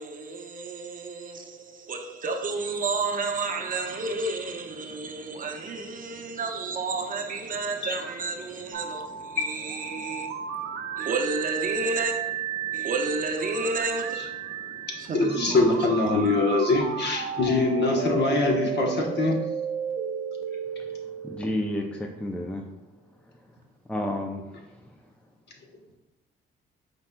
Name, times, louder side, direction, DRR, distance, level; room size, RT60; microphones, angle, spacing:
voice 1, 0.0-10.3 11.0-12.2 12.7-14.2 15.0-15.7, right 3 dB, 45° right, 0.7 m, -31 dB
voice 2, 4.8-5.4 5.8-6.4 8.5-11.1 12.6-12.9 14.1-14.2 14.6-19.5, left 3 dB, 60° left, 1.1 m, -26 dB
sound 1, 8.7-22.6, right 8 dB, 75° right, 0.4 m, -34 dB
voice 3, 21.2-22.6 23.9-24.4, left 1 dB, 5° left, 0.4 m, -30 dB
5.4 x 3.8 x 2.2 m
cardioid pair, 90°, 20 cm